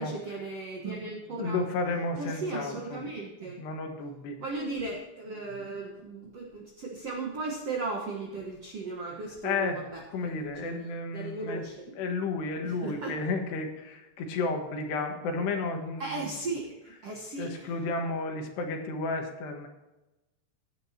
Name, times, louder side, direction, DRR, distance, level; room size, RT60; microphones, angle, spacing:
voice 1, 0.0-1.6 2.2-3.6 4.4-10.9 11.1-11.8 12.6-13.2 16.0-17.7, right 3 dB, 65° right, -1 dB, 1.5 m, -36 dB
voice 2, 1.4-3.1 3.6-4.4 9.4-9.8 10.1-11.6 12.0-16.3 17.4-19.7, left 3 dB, 75° left, 3 dB, 3.6 m, -32 dB
16.5 x 10.5 x 2.9 m, 1.0 s
omnidirectional pair, 4.9 m